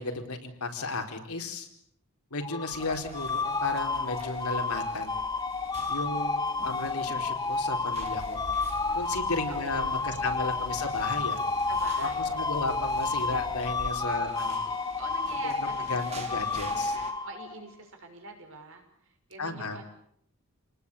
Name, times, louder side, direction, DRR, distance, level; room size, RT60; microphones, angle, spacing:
voice 1, 0.0-1.7 2.3-5.1 5.9-8.4 8.9-11.4 12.0-12.1 12.3-14.6 15.4-17.0 19.4-19.8, left 3 dB, 85° left, 3 dB, 4.6 m, -34 dB
sound 1, 2.4-17.7, left 4 dB, 20° left, 1.6 m, -31 dB
sound 2, 2.7-17.1, right 2 dB, 30° right, 4.1 m, -48 dB
sound 3, 7.9-13.9, left 1 dB, 40° left, 6.1 m, -46 dB
voice 2, 9.5-10.8 11.7-12.7 14.1-14.5 15.0-16.1 17.2-19.8, right 3 dB, 60° right, 5 dB, 6.0 m, -45 dB
29.0 x 19.5 x 8.6 m, 0.69 s
head